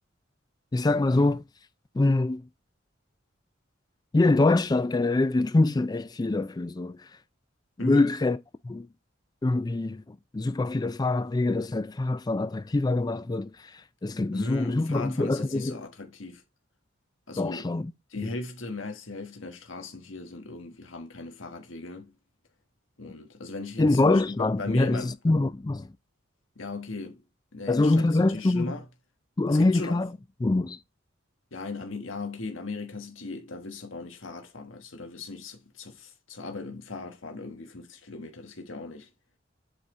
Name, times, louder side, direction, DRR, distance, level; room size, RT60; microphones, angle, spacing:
voice 1, 0.7-1.4 1.9-2.5 4.1-7.2 7.8-8.4 8.6-8.9 9.4-15.8 17.4-17.9 18.2-18.3 23.8-25.9 27.7-28.7 29.4-30.1 30.4-30.8, left 2 dB, 20° left, 0.3 m, -24 dB
voice 2, 14.3-16.4 17.3-17.7 18.1-22.1 23.0-25.1 26.6-27.2 27.5-28.9 29.5-30.0 31.5-39.1, left 3 dB, 90° left, 1.3 m, -38 dB
7.9 x 4.1 x 3.7 m
head